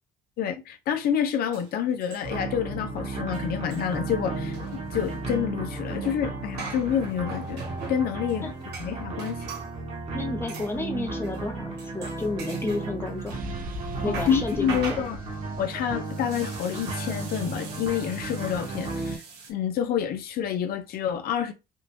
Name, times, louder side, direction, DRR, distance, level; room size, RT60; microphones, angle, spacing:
voice 1, 0.4-7.6 7.9-8.5 8.8-9.4 14.0-15.2 15.6-19.2 19.5-21.5, left 8 dB, 65° left, 0.6 m, -28 dB
sound 1, 1.1-1.2 1.5-2.6 2.8-3.0 3.2-9.7 10.5-10.7 11.2-11.5 11.8-13.4 13.7-19.5, right 4 dB, 85° right, 1.4 m, -42 dB
sound 2, 2.2-19.2, right 3 dB, 40° right, 1.3 m, -34 dB
voice 2, 10.1-13.4 14.0-15.0, left 2 dB, 15° left, 0.8 m, -31 dB
sound 3, 13.3-17.1, equal, 55° right, 0.6 m, -40 dB
3.5 x 2.5 x 3.0 m
cardioid pair, 110°, 17 cm